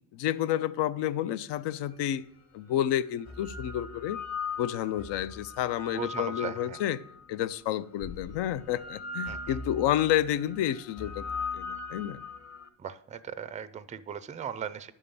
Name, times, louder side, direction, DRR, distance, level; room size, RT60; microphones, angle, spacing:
voice 1, 0.1-2.3 2.5-4.2 4.6-7.0 7.3-11.2 11.5-12.2, left 11 dB, 70° left, 0.6 m, -30 dB
sound 1, 1.9-2.0 3.0-7.2 8.0-12.7, left 4 dB, 35° left, 1.3 m, -39 dB
voice 2, 5.9-6.8 9.3-9.5 12.8-14.9, right 7 dB, 15° right, 0.4 m, -38 dB
11.0 x 3.7 x 6.8 m
cardioid pair, 100°, 45 cm